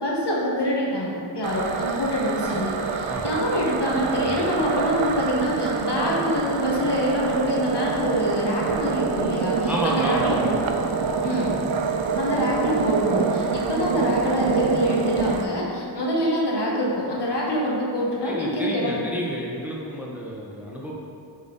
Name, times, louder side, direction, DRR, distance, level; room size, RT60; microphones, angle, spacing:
voice 1, 0.0-10.6 11.2-11.5 12.2-19.0, equal, 60° left, -4 dB, 1.3 m, -25 dB
sound 1, 1.4-15.4, right 5 dB, 85° right, 0.6 m, -26 dB
voice 2, 3.0-3.4 4.1-4.5 9.7-10.6 18.2-21.0, equal, 5° right, -4 dB, 0.9 m, -31 dB
7.3 x 4.1 x 3.8 m, 2.5 s
wide cardioid pair, 85°, 46 cm